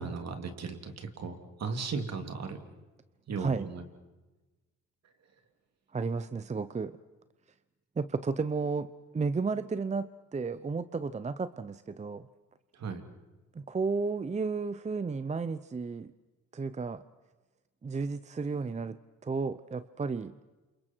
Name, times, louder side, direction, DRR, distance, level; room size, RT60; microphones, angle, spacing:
voice 1, 0.0-1.3 1.6-2.6 3.3-3.8 12.7-13.0, right 4 dB, 60° right, 6 dB, 3.1 m, -36 dB
voice 2, 3.4-3.7 5.9-7.0 8.0-12.3 13.5-16.1 16.5-17.0 17.8-20.3, right 4 dB, 25° right, 13 dB, 0.7 m, -33 dB
30.0 x 28.0 x 4.6 m, 1.2 s
cardioid pair, 90°, 30 cm